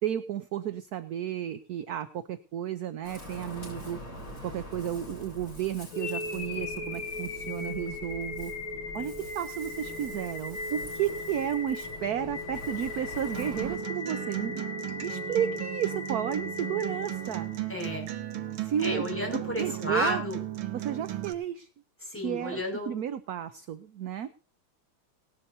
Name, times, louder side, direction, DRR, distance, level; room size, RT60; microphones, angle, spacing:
voice 1, 0.0-4.0 4.4-8.5 8.9-17.5 18.6-19.1 19.3-20.2 20.7-21.7 22.2-24.3, right 10 dB, 65° right, 12 dB, 1.0 m, -33 dB
Ocean, 3.0-13.8, left 1 dB, 50° left, 8.0 m, -45 dB
sound 1, 5.9-18.0, left 3 dB, 75° left, 2.1 m, -38 dB
Acoustic guitar, 13.3-21.3, right 13 dB, 80° right, 1.9 m, -36 dB
voice 2, 17.7-18.1 18.8-20.4 22.0-22.9, left 1 dB, 5° left, -1 dB, 5.9 m, -32 dB
18.5 x 12.0 x 2.8 m, 0.36 s
omnidirectional pair, 2.3 m